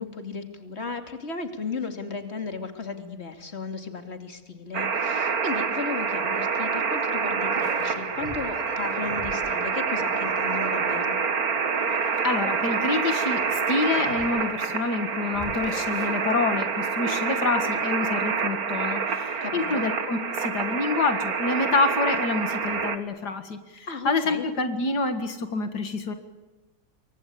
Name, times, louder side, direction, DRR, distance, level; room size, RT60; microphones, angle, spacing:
voice 1, 0.0-11.2 19.4-19.9 23.9-24.4, left 4 dB, 40° left, 7 dB, 2.9 m, -35 dB
sound 1, 4.7-23.0, right 5 dB, 65° right, 2.1 m, -27 dB
sound 2, 7.6-9.4 9.9-11.0 11.5-12.7 13.4-14.6 15.3-16.1, left 1 dB, 20° left, 5.3 m, -41 dB
voice 2, 12.2-26.1, left 3 dB, 75° left, 8 dB, 2.5 m, -27 dB
28.0 x 24.0 x 8.6 m, 1.1 s
omnidirectional pair, 1.7 m